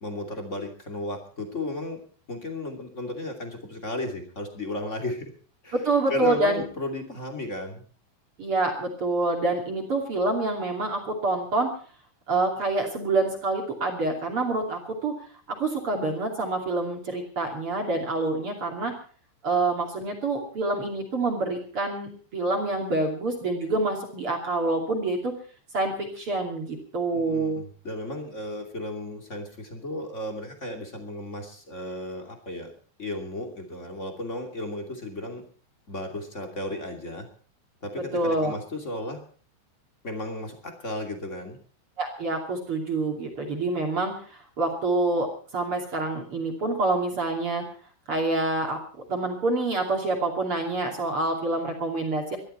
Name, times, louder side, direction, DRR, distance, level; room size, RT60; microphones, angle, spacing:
voice 1, 0.0-2.0 2.3-5.3 5.6-5.8 6.1-7.8 27.1-32.7 33.0-35.5 35.9-37.3 37.8-39.2 40.0-41.6, left 1 dB, 25° left, 4 dB, 1.6 m, -34 dB
voice 2, 5.7-6.6 8.4-11.7 12.3-15.2 15.5-18.9 19.4-25.3 25.7-27.6 38.1-38.5 42.0-47.6 48.1-48.8 49.1-52.4, right 2 dB, 35° right, 2 dB, 2.7 m, -27 dB
21.5 x 13.0 x 4.4 m, 0.43 s
omnidirectional pair, 5.7 m